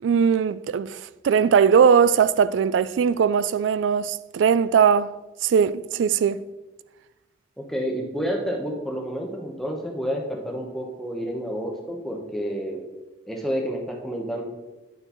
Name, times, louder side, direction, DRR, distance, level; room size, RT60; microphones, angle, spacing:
voice 1, 0.0-5.1 5.4-6.4, right 7 dB, 85° right, 0.3 m, -20 dB
voice 2, 7.6-12.8 13.3-14.4, equal, ahead, 1.0 m, -29 dB
9.2 x 7.5 x 3.0 m
head